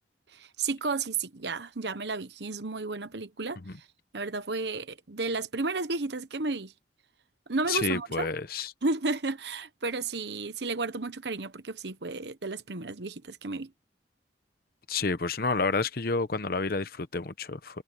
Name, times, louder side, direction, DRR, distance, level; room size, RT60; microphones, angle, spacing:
voice 1, 0.3-3.8 4.1-6.7 7.5-8.3 8.8-13.7, right 3 dB, 70° right, 1.1 m, -32 dB
voice 2, 7.7-8.7 14.9-17.8, left 4 dB, 55° left, 0.9 m, -29 dB
head